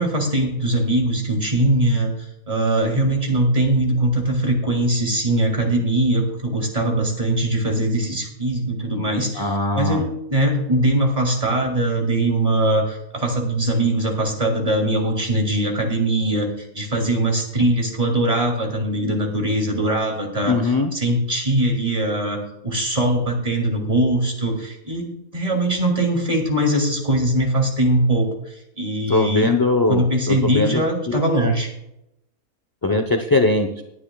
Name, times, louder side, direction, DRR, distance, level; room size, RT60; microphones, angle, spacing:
voice 1, 0.0-2.2 2.5-29.5 29.9-31.7, right 1 dB, 25° right, 1 dB, 2.6 m, -21 dB
voice 2, 9.3-10.0 20.5-20.9 29.1-31.5 32.8-33.8, left 2 dB, 25° left, 5 dB, 0.5 m, -21 dB
20.0 x 9.8 x 2.3 m, 0.84 s
omnidirectional pair, 1.5 m